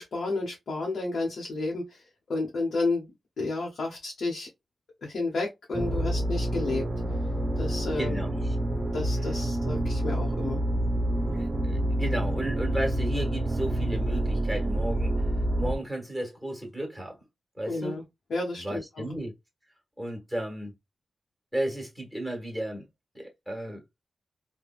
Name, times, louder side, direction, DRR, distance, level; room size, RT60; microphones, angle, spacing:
voice 1, 0.0-2.0 2.3-4.5 5.0-6.8 7.6-8.2 8.9-10.6 17.7-18.0 18.3-19.0, left 3 dB, 75° left, 0.9 m, -31 dB
sound 1, 5.7-15.8, right 1 dB, 30° right, 0.7 m, -28 dB
voice 2, 8.0-8.5 11.3-15.1 15.6-17.2 17.6-18.0 18.6-19.3 20.0-20.7 21.5-22.9 23.1-23.8, right 1 dB, 5° left, 1.5 m, -34 dB
3.3 x 2.2 x 2.3 m
wide cardioid pair, 90°, 0 cm